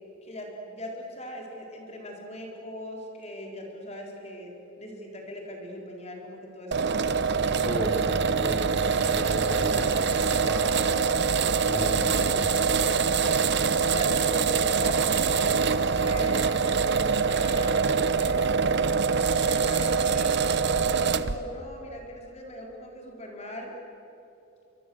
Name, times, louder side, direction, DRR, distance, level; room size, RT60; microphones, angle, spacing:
voice 1, 0.2-8.5 13.8-15.3 15.9-18.4 19.5-23.7, left 1 dB, 30° left, 0 dB, 4.2 m, -40 dB
sound 1, 6.7-21.4, right 5 dB, 55° right, 0.9 m, -24 dB
voice 2, 7.7-8.1 8.4-8.6 9.0-10.8 11.2-12.6, equal, 10° left, -2 dB, 3.5 m, -34 dB
26.0 x 25.0 x 7.8 m, 2.9 s
head